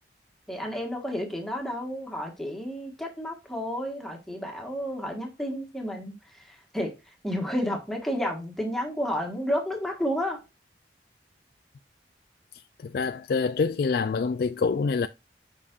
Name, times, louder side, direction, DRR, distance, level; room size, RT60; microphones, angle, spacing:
voice 1, 0.5-10.4, equal, ahead, 1.5 m, -31 dB
voice 2, 12.8-15.1, left 4 dB, 55° left, 0.3 m, -26 dB
7.3 x 5.6 x 2.4 m
head